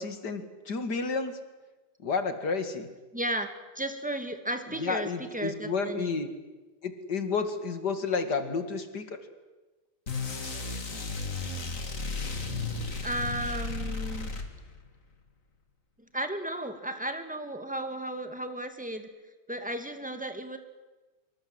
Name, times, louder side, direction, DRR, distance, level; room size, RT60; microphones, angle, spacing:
voice 1, 0.0-1.4 2.0-2.9 4.8-6.3 6.8-9.0, left 4 dB, 60° left, 9 dB, 2.7 m, -31 dB
voice 2, 3.1-3.5 3.7-6.2 13.0-14.3 16.1-19.1 19.5-20.6, right 1 dB, 5° right, 7 dB, 2.2 m, -34 dB
sound 1, 10.1-14.9, left 3 dB, 45° left, 2.8 m, -34 dB
26.0 x 23.5 x 7.9 m, 1.2 s
omnidirectional pair, 2.0 m